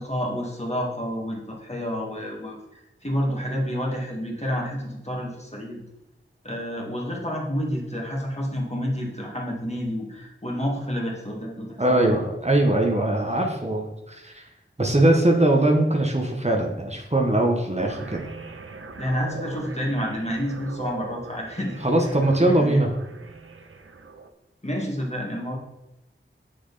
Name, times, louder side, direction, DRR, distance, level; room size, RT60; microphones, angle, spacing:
voice 1, 0.0-5.8 6.4-12.2 19.0-21.8 22.4-22.8 24.6-25.6, equal, 30° left, -2 dB, 2.1 m, -29 dB
voice 2, 11.8-14.4 14.8-18.2 21.8-22.9, right 1 dB, 30° right, 1 dB, 1.2 m, -21 dB
sound 1, 17.8-24.3, right 4 dB, 90° right, 0.7 m, -40 dB
7.9 x 6.5 x 4.1 m, 0.93 s
wide cardioid pair, 45°, 21 cm